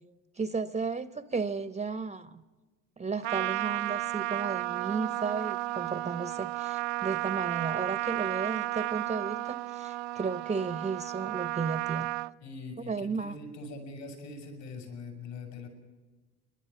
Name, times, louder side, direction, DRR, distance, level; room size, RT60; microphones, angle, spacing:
voice 1, 0.4-2.4 3.0-12.1 12.8-13.4, right 4 dB, 15° right, 15 dB, 0.8 m, -34 dB
Trumpet, 3.2-12.3, right 20 dB, 60° right, 0.6 m, -33 dB
voice 2, 12.4-15.7, left 3 dB, 60° left, 5 dB, 6.3 m, -42 dB
30.0 x 11.5 x 9.5 m, 1.2 s
figure-of-eight pair, 60°, 41 cm